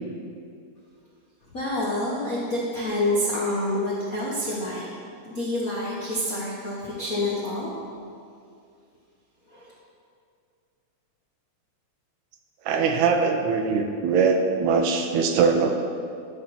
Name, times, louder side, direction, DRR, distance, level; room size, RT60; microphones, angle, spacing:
voice 1, 1.5-4.9 5.2-7.7 9.5-9.7, left 1 dB, 70° left, -5 dB, 0.8 m, -27 dB
voice 2, 12.7-15.7, right 5 dB, 75° right, 4 dB, 1.9 m, -22 dB
12.0 x 4.1 x 5.9 m, 2.4 s
omnidirectional pair, 3.3 m